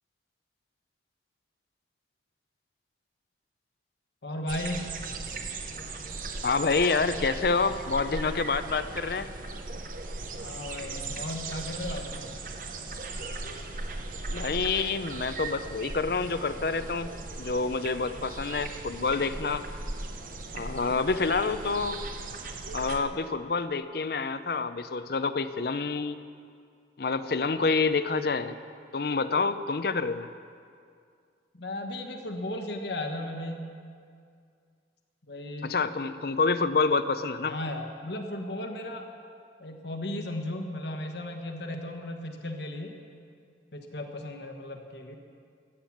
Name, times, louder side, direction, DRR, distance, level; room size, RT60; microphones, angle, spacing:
voice 1, 4.2-4.9 10.4-12.3 20.9-21.3 31.5-33.6 35.3-35.7 37.4-39.1 39.6-43.0 43.7-45.2, left 1 dB, 75° left, 4 dB, 1.4 m, -35 dB
sound 1, 4.5-23.0, right 3 dB, 45° right, 0.8 m, -38 dB
voice 2, 6.4-9.3 14.3-17.1 17.4-19.7 20.5-22.0 22.7-26.2 27.0-28.6 28.9-30.3 35.6-37.5, left 4 dB, 55° left, 12 dB, 0.5 m, -27 dB
14.5 x 8.8 x 7.2 m, 2.3 s
head